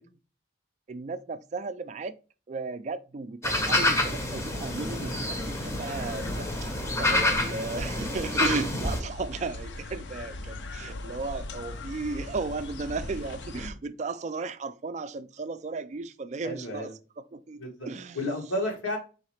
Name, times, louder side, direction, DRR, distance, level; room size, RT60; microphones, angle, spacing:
voice 1, 0.9-2.1 2.5-6.7 7.0-18.2, right 3 dB, 35° right, 0.3 m, -35 dB
sound 1, 3.4-9.0, left 1 dB, 15° left, 0.6 m, -28 dB
sound 2, 3.9-13.7, left 2 dB, 65° left, 0.6 m, -40 dB
voice 2, 16.4-16.9 17.6-17.9 18.1-19.0, left 1 dB, 90° left, 1.6 m, -31 dB
4.7 x 3.2 x 3.1 m
head